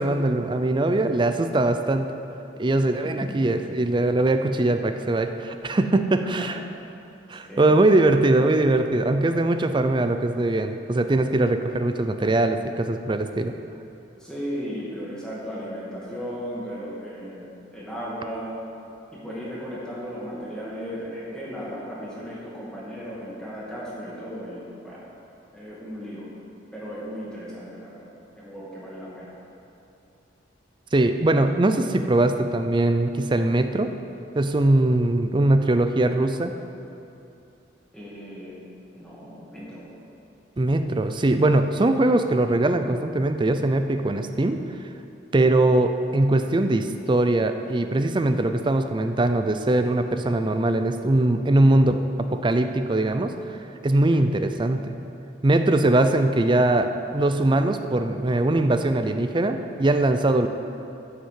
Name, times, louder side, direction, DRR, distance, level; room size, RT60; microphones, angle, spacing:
voice 1, 0.0-2.1 2.6-6.6 7.3-13.5 30.9-33.9 34.3-36.5 40.6-44.6 45.3-53.3 53.8-55.0 55.4-60.5, right 2 dB, 25° right, 8 dB, 0.5 m, -21 dB
voice 2, 3.0-3.4 6.2-6.5 7.4-7.7 14.2-17.5 17.7-18.5 19.1-25.0 25.5-26.3 26.7-28.1 28.3-29.3 37.9-38.6 38.9-39.8 54.1-54.2, equal, 5° left, -8 dB, 2.4 m, -36 dB
10.0 x 5.7 x 7.5 m, 2.8 s
head